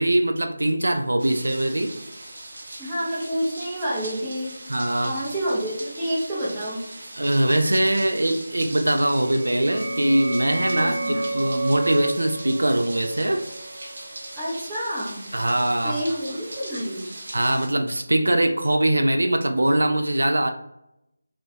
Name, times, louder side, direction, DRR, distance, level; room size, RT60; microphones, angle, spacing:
voice 1, 0.0-2.0 4.7-5.2 7.2-13.4 15.3-16.0 17.3-20.5, right 1 dB, 85° right, 5 dB, 0.3 m, -22 dB
sound 1, 1.2-17.7, right 1 dB, 55° right, 0.7 m, -40 dB
voice 2, 2.8-4.6 5.0-6.8 10.7-11.5 14.4-15.3 15.8-17.1, equal, 10° right, -10 dB, 0.6 m, -29 dB
sound 2, 9.1-14.5, right 1 dB, 20° left, 0.8 m, -31 dB
2.2 x 2.1 x 2.7 m, 0.83 s
figure-of-eight pair, 165°, 0 cm